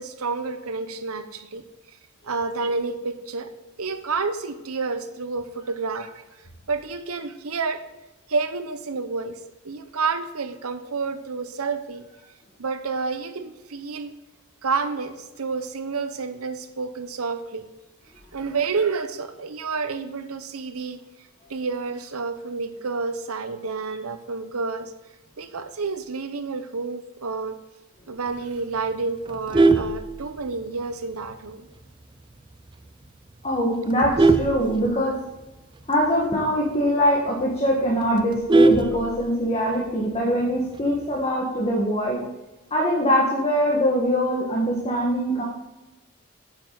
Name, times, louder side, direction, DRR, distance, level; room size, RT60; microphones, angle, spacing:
voice 1, 0.0-1.6 2.2-3.5 3.8-6.2 6.7-7.8 8.3-9.4 9.6-12.0 12.6-14.1 14.6-17.7 18.3-21.0 21.5-24.9 25.4-27.6 28.1-31.7 38.9-39.0, right 4 dB, 90° right, 10 dB, 0.9 m, -29 dB
Vehicle horn car horn honking, 29.3-30.8 31.2-31.5 31.8-31.9 32.3-32.4 32.7-33.1 33.6-35.4 35.8-35.9 36.2-36.3 36.7-36.8 37.2-37.3 37.5-39.6 40.7-41.2, right 3 dB, 20° right, 0.5 m, -20 dB
voice 2, 33.4-35.1 35.9-42.2 42.7-45.4, equal, 30° left, -3 dB, 1.6 m, -23 dB
8.7 x 8.1 x 4.0 m, 1.0 s
head